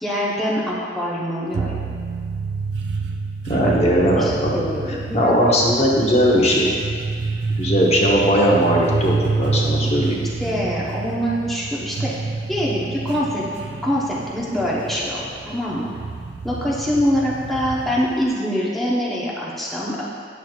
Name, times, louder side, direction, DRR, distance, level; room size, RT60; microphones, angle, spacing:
voice 1, 0.0-1.8 3.6-5.6 9.9-10.0 10.4-12.1 12.5-13.4 13.8-15.9 16.4-20.0, equal, ahead, -7 dB, 0.9 m, -24 dB
sound 1, 1.5-18.3, right 4 dB, 75° right, 0.4 m, -28 dB
voice 2, 3.4-6.7 7.5-10.2, equal, 40° left, -4 dB, 0.9 m, -19 dB
9.0 x 6.2 x 2.3 m, 2.1 s
head